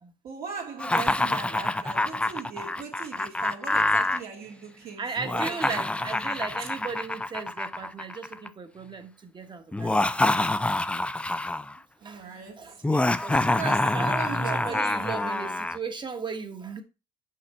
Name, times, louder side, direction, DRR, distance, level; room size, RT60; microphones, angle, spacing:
voice 1, 0.2-6.3 12.0-12.8 13.4-15.3, right 6 dB, 60° right, 1.9 m, -39 dB
Laughter, 0.8-4.2 5.2-8.5 9.7-11.7 12.8-15.8, left 2 dB, 5° left, 0.3 m, -26 dB
voice 2, 5.0-10.5 12.0-13.5 13.9-16.8, right 4 dB, 25° right, 1.3 m, -37 dB
5.8 x 4.9 x 4.3 m
cardioid pair, 110°, 17 cm